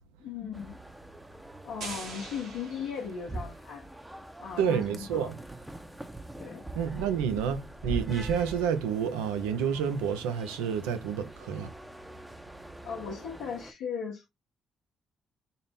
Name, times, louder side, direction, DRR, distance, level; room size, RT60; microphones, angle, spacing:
voice 1, 0.2-0.8 1.6-3.9 4.4-5.3 6.4-6.6 7.3-7.4 12.8-14.3, left 7 dB, 80° left, 0.8 m, -37 dB
sound 1, 0.5-13.7, right 2 dB, 10° right, 0.6 m, -43 dB
sound 2, 1.8-3.6, right 4 dB, 75° right, 1.6 m, -43 dB
voice 2, 4.6-5.4 6.8-11.7, right 7 dB, 90° right, 0.5 m, -29 dB
4.1 x 2.0 x 3.4 m
hypercardioid pair, 50°, 0 cm